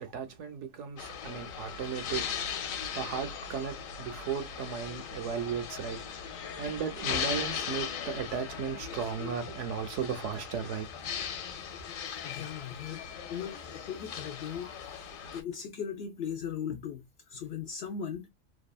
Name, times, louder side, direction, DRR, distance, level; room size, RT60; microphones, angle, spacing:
voice 1, 0.0-2.2 2.9-6.0 6.6-10.9, right 7 dB, 70° right, 0.9 m, -35 dB
sound 1, 1.0-15.4, left 7 dB, 90° left, 1.0 m, -38 dB
voice 2, 12.2-13.0 13.3-15.0 15.3-18.3, left 7 dB, 65° left, 0.7 m, -38 dB
2.7 x 2.3 x 2.3 m
omnidirectional pair, 1.4 m